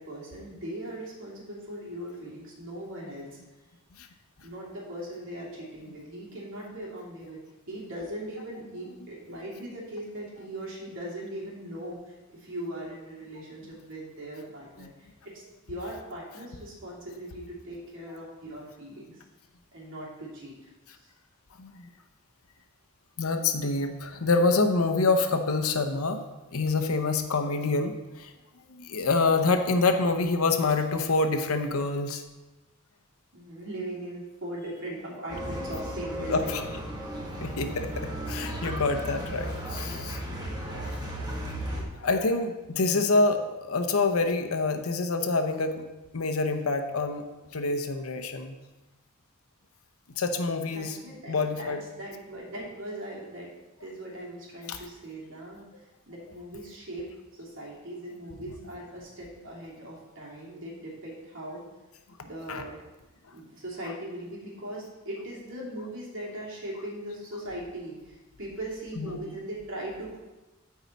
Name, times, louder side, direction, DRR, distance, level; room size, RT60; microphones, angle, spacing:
voice 1, 0.0-3.4 4.4-7.4 7.7-19.2 19.7-21.1 33.3-36.7 40.6-41.1 50.7-53.5 53.8-57.1 57.4-61.6 62.2-62.7 63.3-70.2, right 1 dB, 60° right, -5 dB, 2.8 m, -40 dB
voice 2, 21.6-21.9 23.2-26.2 26.5-28.3 28.8-32.2 36.3-36.6 37.4-40.2 42.0-45.8 46.1-47.3 47.5-48.5 50.2-51.0 51.3-51.8 54.7-54.8 62.5-62.6 69.0-69.2, left 3 dB, 75° left, 6 dB, 0.8 m, -26 dB
sound 1, 35.3-41.8, right 1 dB, 20° right, 1.4 m, -35 dB
12.5 x 4.8 x 4.1 m, 1.1 s
head